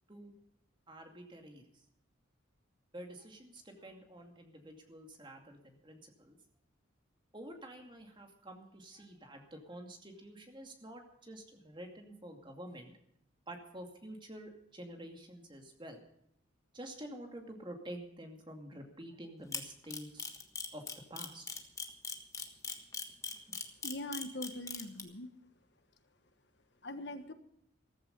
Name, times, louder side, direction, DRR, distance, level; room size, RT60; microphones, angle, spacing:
voice 1, 0.9-1.6 2.9-6.4 7.3-12.9 13.5-16.0 16.7-20.3 20.7-20.8 21.1-21.5, right 1 dB, 25° right, 3 dB, 2.4 m, -49 dB
Camera, 19.5-25.0, left 5 dB, 15° left, 1.4 m, -39 dB
voice 2, 23.8-25.3 26.8-27.3, left 1 dB, 55° left, 9 dB, 1.3 m, -42 dB
14.5 x 14.0 x 5.3 m, 0.73 s
head